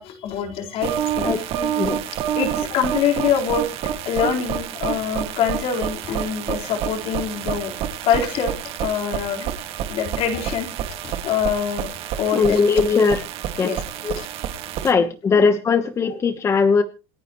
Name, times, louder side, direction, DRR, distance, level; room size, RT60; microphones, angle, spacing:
voice 1, 0.0-1.5 2.3-3.6 4.0-7.7 8.0-9.5 9.9-10.7 11.0-11.9 12.1-12.9 13.6-13.8 14.1-14.3 15.0-15.1, left 8 dB, 50° left, 3 dB, 4.4 m, -25 dB
sound 1, 0.8-14.9, right 10 dB, 50° right, 2.1 m, -28 dB
voice 2, 1.2-2.0 12.3-13.3 13.6-14.1 14.8-16.8, left 5 dB, 20° left, 8 dB, 1.1 m, -20 dB
27.5 x 10.0 x 3.1 m, 0.33 s
cardioid pair, 150°, 13 cm